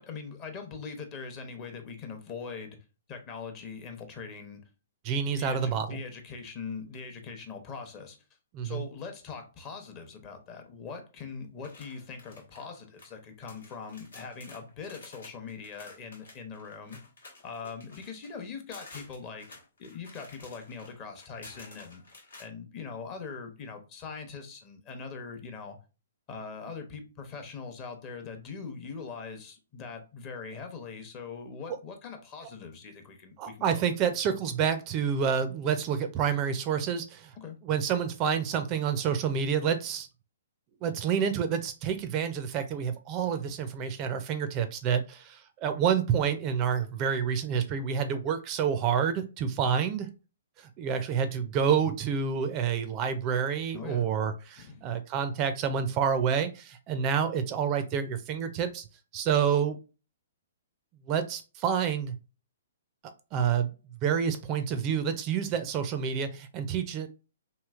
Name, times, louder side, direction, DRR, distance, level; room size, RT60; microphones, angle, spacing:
voice 1, 0.0-2.8 3.1-4.6 5.4-8.2 8.6-17.0 17.4-22.0 22.4-25.8 26.3-34.1 37.4-37.6 53.7-54.1 54.6-54.8, left 5 dB, 30° left, 0.7 m, -42 dB
voice 2, 5.0-6.0 8.5-8.8 33.4-37.3 37.6-40.1 40.8-50.1 50.6-58.8 59.1-59.8 61.1-62.1 63.3-63.7 64.0-67.1, right 7 dB, 30° right, 0.4 m, -28 dB
sound 1, 11.6-13.1 13.5-22.5, left 3 dB, 85° left, 1.1 m, -51 dB
3.0 x 2.7 x 2.4 m
hypercardioid pair, 135°, 0 cm